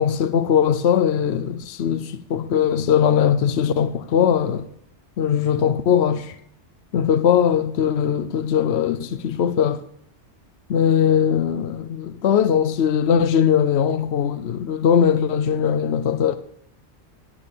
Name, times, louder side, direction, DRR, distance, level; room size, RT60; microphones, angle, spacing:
voice 1, 0.0-4.7 5.2-6.4 6.9-9.8 10.7-16.3, left 8 dB, 70° left, 1.0 m, -20 dB
14.5 x 8.8 x 6.9 m
omnidirectional pair, 1.2 m